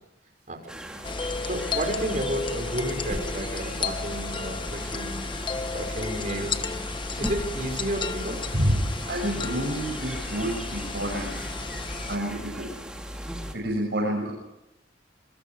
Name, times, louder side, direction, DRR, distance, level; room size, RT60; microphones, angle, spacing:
sound 1, 0.7-13.5, right 1 dB, 5° right, 3.1 m, -39 dB
sound 2, 1.0-12.2, left 4 dB, 25° left, 1.1 m, -33 dB
voice 1, 1.4-5.3 5.7-6.6 7.2-8.5, right 1 dB, 40° right, 4 dB, 5.6 m, -31 dB
voice 2, 8.5-11.3 12.1-12.7 13.1-14.3, right 1 dB, 60° right, 0 dB, 6.7 m, -28 dB
26.5 x 23.5 x 4.9 m, 0.90 s
head